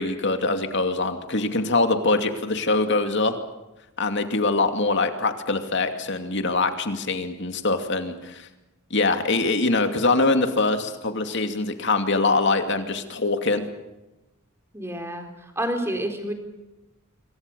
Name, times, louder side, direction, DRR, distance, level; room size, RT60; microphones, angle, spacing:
voice 1, 0.0-3.4 4.0-8.5 8.9-13.6, left 3 dB, 55° left, 7 dB, 2.5 m, -23 dB
voice 2, 14.7-16.3, right 1 dB, 10° right, 5 dB, 3.9 m, -29 dB
26.5 x 24.0 x 7.0 m, 1.0 s
head